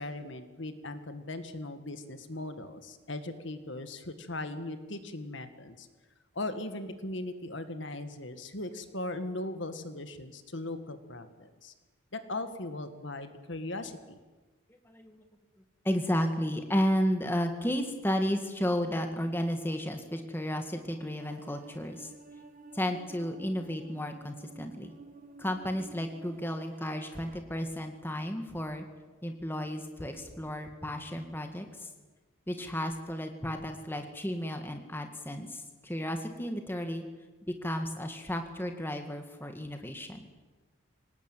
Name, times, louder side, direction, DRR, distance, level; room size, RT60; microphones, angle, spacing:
voice 1, 0.0-5.9 6.3-11.7 12.1-14.2, left 2 dB, 60° left, 9 dB, 1.9 m, -39 dB
voice 2, 14.9-15.2 15.8-22.1 22.7-24.9 25.4-28.9 29.2-31.9 32.5-37.0 37.6-40.2, equal, 10° left, 5 dB, 2.0 m, -33 dB
sound 1, 21.2-27.4, right 2 dB, 40° right, 1.5 m, -51 dB
25.0 x 19.5 x 9.2 m, 1.2 s
head